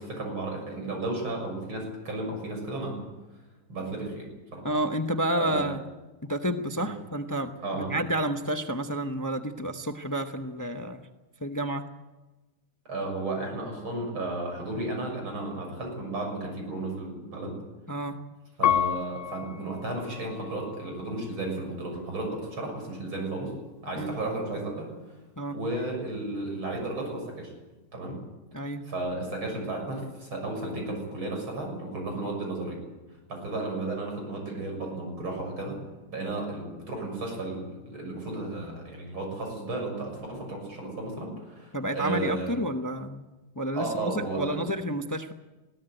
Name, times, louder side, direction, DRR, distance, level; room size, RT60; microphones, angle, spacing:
voice 1, 0.0-3.0 3.7-4.6 5.4-5.7 6.8-6.9 7.6-8.0 12.9-17.5 18.6-23.5 23.8-24.9 25.5-27.5 27.9-28.2 28.9-32.8 33.3-35.8 36.1-42.6 43.7-44.6, right 2 dB, 85° right, 2 dB, 7.6 m, -33 dB
voice 2, 4.6-5.8 6.3-7.5 7.9-11.0 11.4-11.8 17.9-18.2 23.9-24.2 25.4-25.6 28.5-28.8 41.7-43.3 43.6-45.3, right 1 dB, 30° left, 7 dB, 0.3 m, -30 dB
Piano, 18.6-21.4 22.0-22.7, left 11 dB, 55° left, 0.8 m, -31 dB
21.0 x 16.5 x 9.1 m, 1.1 s
omnidirectional pair, 2.2 m